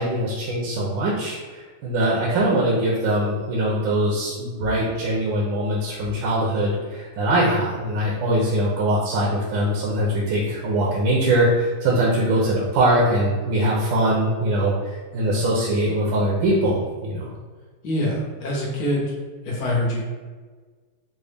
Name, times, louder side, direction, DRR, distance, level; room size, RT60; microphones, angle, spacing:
voice 1, 0.0-17.3, right 1 dB, 75° right, -4 dB, 1.3 m, -22 dB
voice 2, 17.8-19.1 19.4-20.0, left 1 dB, 65° left, -3 dB, 1.2 m, -24 dB
3.9 x 2.0 x 3.3 m, 1.4 s
omnidirectional pair, 2.2 m